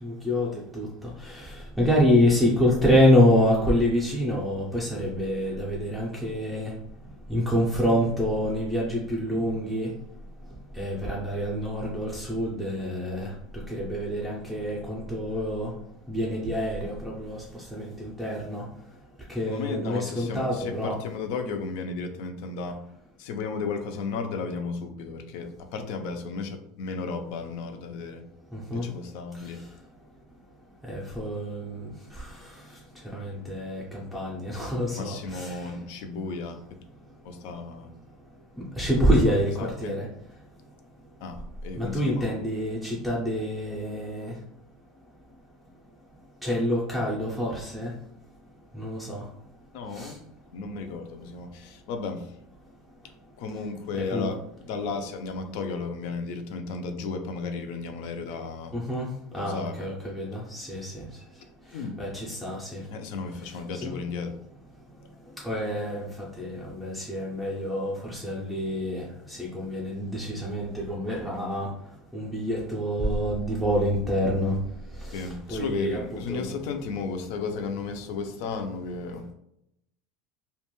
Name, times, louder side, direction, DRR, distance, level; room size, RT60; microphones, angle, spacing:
voice 1, 0.0-0.9 1.2-6.7 7.3-9.9 10.8-13.3 13.7-15.7 16.1-17.4 17.7-18.6 19.3-21.0 28.5-28.8 30.9-32.3 33.1-35.6 38.8-40.1 41.7-44.3 46.4-47.9 48.8-49.2 50.0-50.1 54.1-54.3 58.7-59.1 59.3-60.9 62.0-62.8 63.7-63.9 65.4-66.0 66.4-71.7 72.1-74.5 75.1-75.2 75.5-76.0 76.3-76.5, equal, ahead, -5 dB, 0.5 m, -26 dB
voice 2, 19.5-22.8 23.2-28.2 28.7-29.6 34.9-36.6 37.2-37.9 38.9-40.0 41.2-42.4 49.7-50.2 50.5-52.3 53.4-58.7 59.3-59.9 61.7-62.0 62.9-64.3 75.1-79.3, left 4 dB, 65° left, 6 dB, 0.4 m, -34 dB
2.4 x 2.2 x 3.0 m, 0.76 s
supercardioid pair, 150°, 0 cm